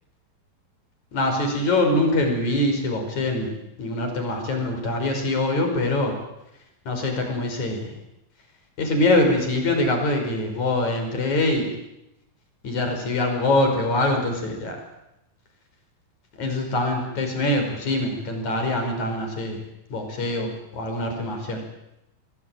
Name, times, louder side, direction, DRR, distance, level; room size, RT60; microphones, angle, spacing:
voice 1, 1.1-3.5 3.8-6.1 6.9-8.0 8.8-11.7 12.6-14.8 16.4-19.6 19.9-21.6, left 2 dB, 55° left, 4 dB, 6.5 m, -24 dB
27.0 x 20.0 x 9.1 m, 0.88 s
omnidirectional pair, 4.0 m